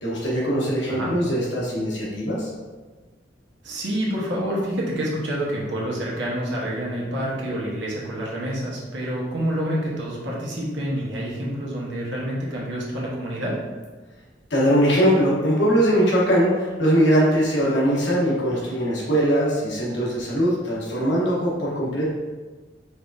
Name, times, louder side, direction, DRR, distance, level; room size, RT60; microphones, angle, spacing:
voice 1, 0.0-2.5 14.5-22.1, equal, 80° left, -6 dB, 1.1 m, -21 dB
voice 2, 3.6-13.6, equal, 90° right, -5 dB, 1.1 m, -28 dB
4.5 x 3.6 x 2.7 m, 1.3 s
head